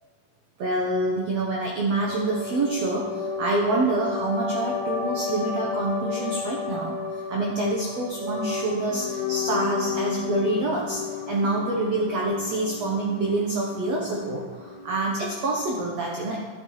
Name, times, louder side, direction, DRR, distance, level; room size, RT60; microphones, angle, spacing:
voice 1, 0.6-7.0 7.3-11.0 11.3-16.4, right 2 dB, 75° right, -2 dB, 1.5 m, -26 dB
sound 1, 2.1-15.1, left 5 dB, 75° left, 1.5 m, -32 dB
13.0 x 8.0 x 3.1 m, 1.5 s
omnidirectional pair, 4.3 m